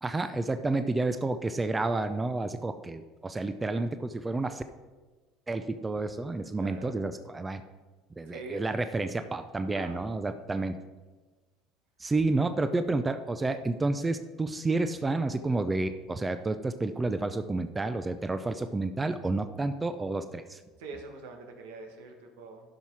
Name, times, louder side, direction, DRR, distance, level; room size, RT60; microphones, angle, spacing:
voice 1, 0.0-4.6 5.5-7.6 8.2-10.8 12.0-20.6, right 2 dB, 15° right, 10 dB, 0.5 m, -30 dB
voice 2, 6.6-6.9 8.3-8.8 9.7-10.0 20.8-22.6, right 3 dB, 85° right, 4 dB, 1.4 m, -43 dB
11.5 x 5.7 x 4.7 m, 1.3 s
supercardioid pair, 100°, 0 cm